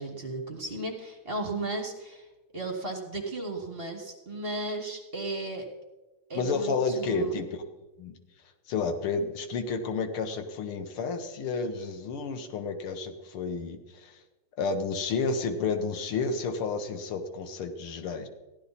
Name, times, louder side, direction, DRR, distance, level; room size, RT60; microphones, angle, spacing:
voice 1, 0.0-2.3 2.5-5.7 6.3-7.3, right 2 dB, 30° right, 1 dB, 1.7 m, -35 dB
voice 2, 6.3-7.5 8.0-8.1 8.7-14.2 14.6-18.3, left 4 dB, 85° left, 7 dB, 2.0 m, -31 dB
15.0 x 11.5 x 4.1 m, 1.1 s
omnidirectional pair, 2.3 m